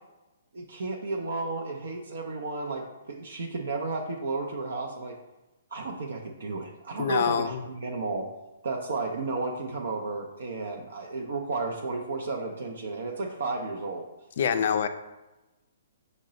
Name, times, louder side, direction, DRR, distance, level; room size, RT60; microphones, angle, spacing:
voice 1, 0.5-5.2 5.7-8.3 8.6-14.0, right 3 dB, 75° right, 1 dB, 0.5 m, -33 dB
voice 2, 7.0-7.6 14.4-14.9, left 7 dB, 60° left, 9 dB, 0.3 m, -25 dB
5.2 x 2.1 x 3.8 m, 1.0 s
hypercardioid pair, 140°, 0 cm